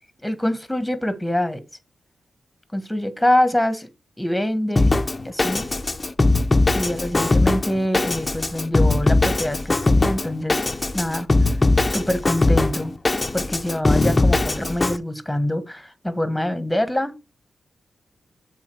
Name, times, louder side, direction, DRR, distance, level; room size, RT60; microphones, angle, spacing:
voice 1, 0.2-1.6 2.7-3.9 4.2-4.9 5.2-5.7 6.7-11.3 11.9-13.0 13.3-17.2, left 1 dB, 5° left, 1.6 m, -25 dB
Drum kit, 4.8-15.0, left 2 dB, 30° left, 0.8 m, -20 dB
7.2 x 3.9 x 6.3 m
cardioid pair, 60°, 0 cm